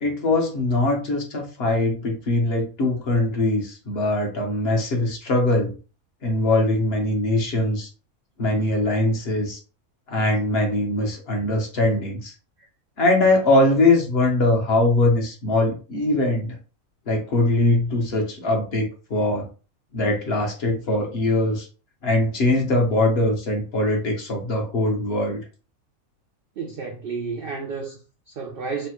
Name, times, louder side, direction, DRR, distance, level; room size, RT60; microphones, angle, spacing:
voice 1, 0.0-5.7 6.2-7.9 8.4-9.6 10.1-12.3 13.0-16.6 17.1-19.5 19.9-21.7 22.0-25.4, left 2 dB, 55° left, 0.9 m, -22 dB
voice 2, 26.6-28.9, right 5 dB, 75° right, 0.5 m, -31 dB
3.1 x 2.1 x 2.9 m
omnidirectional pair, 1.5 m